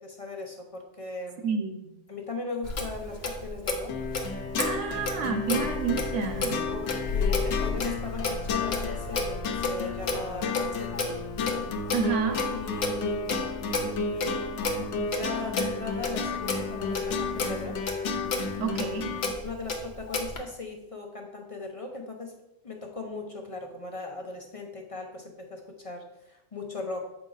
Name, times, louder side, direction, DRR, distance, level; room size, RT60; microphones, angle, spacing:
voice 1, 0.0-1.5 2.1-3.9 6.7-11.2 12.5-17.8 19.2-22.3 22.6-27.1, left 3 dB, 35° left, 2 dB, 0.8 m, -38 dB
voice 2, 1.4-1.9 4.6-6.7 11.9-12.4 18.6-19.1, right 5 dB, 80° right, 5 dB, 1.1 m, -29 dB
Clock, 2.6-20.4, left 3 dB, 65° left, 1.2 m, -32 dB
sound 1, 3.9-19.3, left 5 dB, 90° left, 1.0 m, -33 dB
7.2 x 4.9 x 3.9 m, 0.90 s
omnidirectional pair, 1.2 m